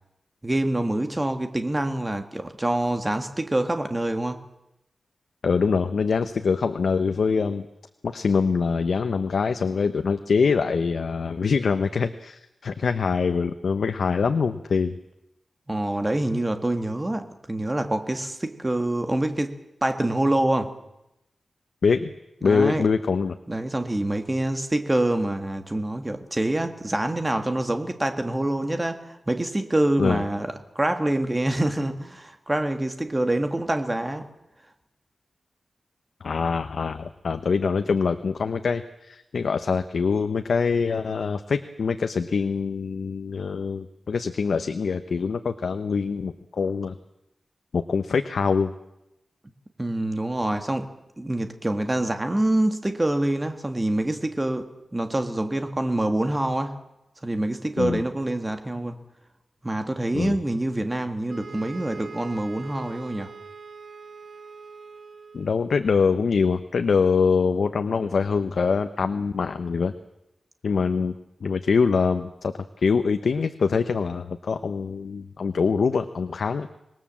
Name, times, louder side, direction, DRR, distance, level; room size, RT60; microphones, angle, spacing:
voice 1, 0.4-4.4 15.7-20.8 22.4-22.9 23.5-34.3 49.8-50.9 51.2-56.8 57.2-59.0 59.6-63.3, right 1 dB, 15° right, 7 dB, 1.8 m, -26 dB
voice 2, 5.4-7.7 8.0-15.0 21.8-22.1 22.4-23.3 30.0-30.2 36.2-46.9 47.7-48.7 57.8-58.0 60.1-60.3 65.3-69.9 70.6-71.2 71.4-76.7, left 5 dB, 75° left, 8 dB, 0.9 m, -24 dB
sound 1, 61.3-65.7, right 5 dB, 65° right, 1.6 m, -43 dB
26.0 x 19.5 x 7.5 m, 0.89 s
wide cardioid pair, 145°, 0 cm